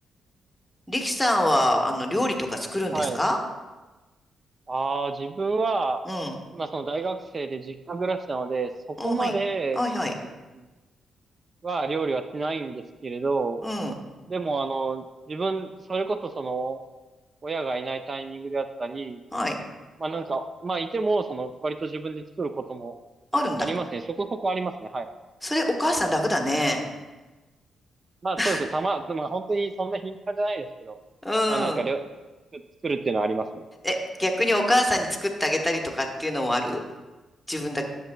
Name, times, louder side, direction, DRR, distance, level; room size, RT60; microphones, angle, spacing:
voice 1, 0.9-3.4 6.0-6.4 9.0-9.3 9.7-10.1 13.6-13.9 19.3-19.6 23.3-23.7 25.4-26.8 28.4-28.6 31.2-31.8 33.8-36.8 37.5-37.9, left 1 dB, 5° left, 2 dB, 1.1 m, -25 dB
voice 2, 4.7-6.0 6.5-9.8 11.6-13.6 14.3-16.8 17.4-19.2 20.0-22.9 23.6-25.1 28.2-31.0 31.5-32.0 32.5-33.6, right 3 dB, 40° right, 9 dB, 0.4 m, -29 dB
10.5 x 6.6 x 2.2 m, 1.2 s
cardioid pair, 75°, 0 cm